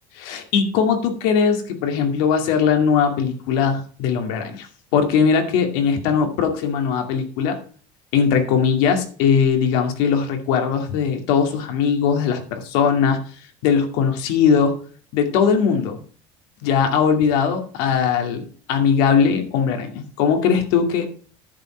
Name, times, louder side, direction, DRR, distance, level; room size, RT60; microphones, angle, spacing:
voice 1, 0.2-4.7 4.9-7.6 8.1-13.2 13.6-14.8 15.1-16.0 16.6-21.0, left 6 dB, 75° left, 5 dB, 2.4 m, -20 dB
10.5 x 7.5 x 4.5 m, 0.42 s
cardioid pair, 145°, 12 cm